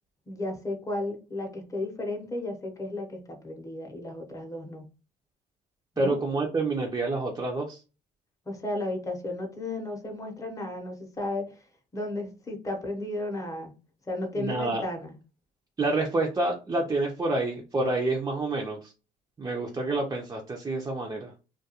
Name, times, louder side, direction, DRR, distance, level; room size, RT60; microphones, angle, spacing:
voice 1, 0.3-4.8 6.0-6.2 8.5-11.6 11.9-13.7 14.1-15.1, left 2 dB, 20° left, 2 dB, 0.8 m, -34 dB
voice 2, 6.0-7.8 14.4-14.8 15.8-18.9 19.4-21.3, right 2 dB, 20° right, -1 dB, 0.5 m, -28 dB
2.3 x 2.2 x 2.8 m, 0.32 s
cardioid pair, 110°, 17 cm